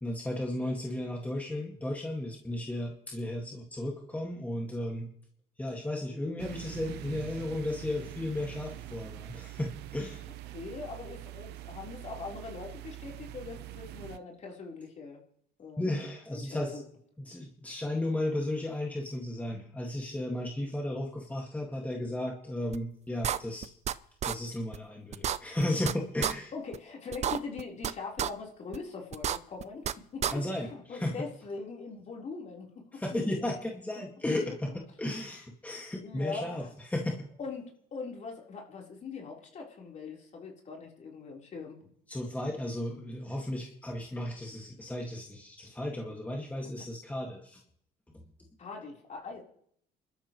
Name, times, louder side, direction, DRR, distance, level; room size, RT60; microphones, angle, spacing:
voice 1, 0.0-5.1 5.6-10.3 15.8-16.8 17.2-23.7 24.2-26.5 30.3-31.1 32.9-34.7 35.0-37.3 42.1-47.6, left 1 dB, 10° left, 0 dB, 2.1 m, -34 dB
sound 1, 6.4-14.2, right 15 dB, 80° right, 0.7 m, -44 dB
voice 2, 10.5-15.2 15.6-16.1 16.3-16.8 26.5-29.9 30.1-30.4 30.7-33.5 36.0-36.7 37.4-41.8 48.6-49.4, left 4 dB, 45° left, -1 dB, 4.2 m, -42 dB
sound 2, 22.7-22.8 23.2-23.9 24.2-24.3 24.7-24.8 25.1-25.9 26.2-26.3 26.7-26.8 27.1-27.9 28.2-28.3 28.7-28.8 29.1-29.9 30.2-30.3, right 9 dB, 40° right, 0.6 m, -30 dB
27.5 x 13.0 x 3.2 m, 0.66 s
cardioid pair, 110°, 17 cm